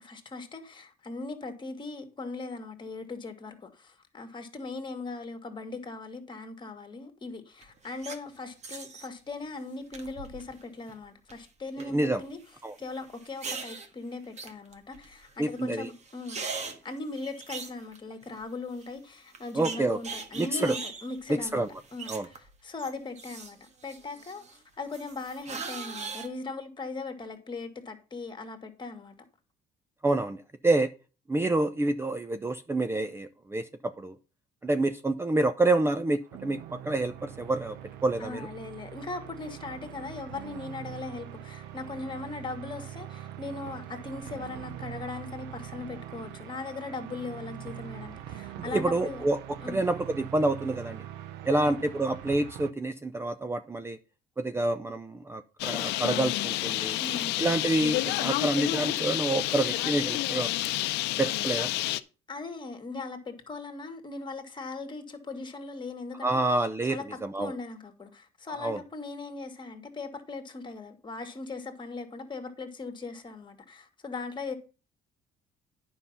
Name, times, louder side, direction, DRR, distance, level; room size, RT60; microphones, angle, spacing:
voice 1, 0.0-12.4 12.8-16.4 16.8-21.6 21.9-23.6 23.8-29.1 38.2-49.3 49.6-49.8 51.5-51.8 57.0-57.5 62.3-66.4 66.9-74.6, left 3 dB, 30° left, 2.0 m, -39 dB
sound 1, 7.6-8.2 8.6-9.1 9.9-10.6 10.9-11.3 11.8-11.9 13.1-13.9 14.4-15.2 15.6-15.7 15.9-18.4 18.8-18.9 19.3-22.5 22.8-24.6 24.9-26.3, right 4 dB, 40° right, 1.6 m, -40 dB
voice 2, 11.8-12.2 12.6-12.8 15.4-15.9 19.5-20.0 20.4-20.8 21.3-21.7 22.1-22.3 30.0-30.9 31.3-33.7 34.0-34.2 34.6-37.8 38.0-38.5 48.7-49.4 49.7-51.1 51.4-54.0 54.4-57.0 57.4-60.5 61.2-61.7 66.2-67.5 68.5-68.8, right 2 dB, 15° right, 0.6 m, -28 dB
sound 2, 36.2-52.7, right 11 dB, 90° right, 0.8 m, -43 dB
Bird, 55.6-62.0, left 16 dB, 90° left, 0.6 m, -29 dB
9.8 x 5.6 x 5.6 m
cardioid pair, 110°, 17 cm